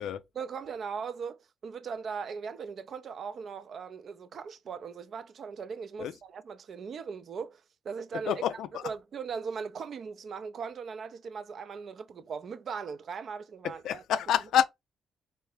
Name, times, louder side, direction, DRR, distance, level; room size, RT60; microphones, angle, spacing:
voice 1, 0.4-8.3 8.8-14.2, right 6 dB, 55° right, 0.4 m, -39 dB
voice 2, 8.3-8.8 13.8-14.6, left 9 dB, 80° left, 0.3 m, -27 dB
3.3 x 2.6 x 3.3 m
cardioid pair, 90°, 0 cm